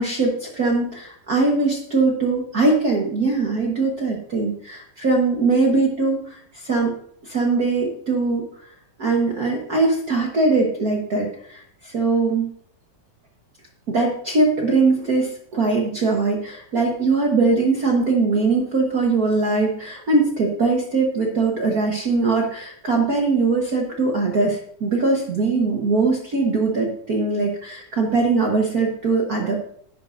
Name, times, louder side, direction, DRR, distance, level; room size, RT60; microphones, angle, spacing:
voice 1, 0.0-6.9 7.2-8.4 9.0-12.5 13.9-29.5, right 3 dB, 65° right, 0 dB, 0.9 m, -21 dB
10.5 x 10.0 x 2.6 m, 0.63 s
omnidirectional pair, 3.5 m